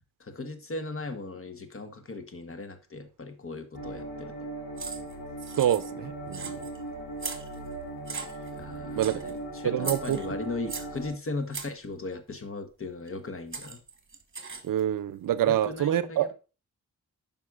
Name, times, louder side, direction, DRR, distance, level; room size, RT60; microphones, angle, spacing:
voice 1, 0.2-4.3 8.5-13.8 15.5-16.3, left 3 dB, 40° left, 1.1 m, -37 dB
sound 1, 3.7-11.1, right 2 dB, 85° left, 2.3 m, -39 dB
sound 2, 4.8-5.1 5.4-6.0 6.3-6.8 7.2-7.7 8.1-8.6 9.0-9.3 9.8-11.0 11.5-11.8 13.1-13.2 13.5-14.8, right 4 dB, 35° right, 1.2 m, -38 dB
voice 2, 5.6-6.5 9.0-9.2 9.6-10.2 14.6-16.3, right 11 dB, 75° right, 0.5 m, -26 dB
9.2 x 5.3 x 2.4 m
cardioid pair, 55°, 33 cm